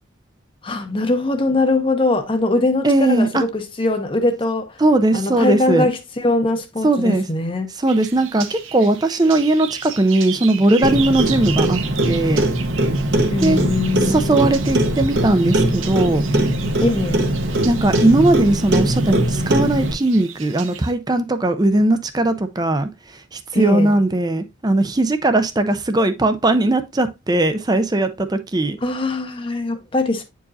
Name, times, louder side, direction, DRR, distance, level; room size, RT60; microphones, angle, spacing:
voice 1, 0.6-4.8 5.1-7.7 13.3-14.4 16.8-17.2 23.5-23.9 28.8-30.2, left 2 dB, 25° left, 0.7 m, -21 dB
voice 2, 2.8-3.4 4.8-5.9 6.8-7.2 7.8-11.8 12.0-12.4 13.4-13.6 14.0-16.2 17.6-22.9 23.3-28.8, right 2 dB, 20° right, 0.5 m, -18 dB
sound 1, 7.9-20.9, right 9 dB, 85° right, 0.7 m, -35 dB
Clock, 10.8-19.9, right 1 dB, 55° right, 1.0 m, -20 dB
8.5 x 4.7 x 2.6 m
head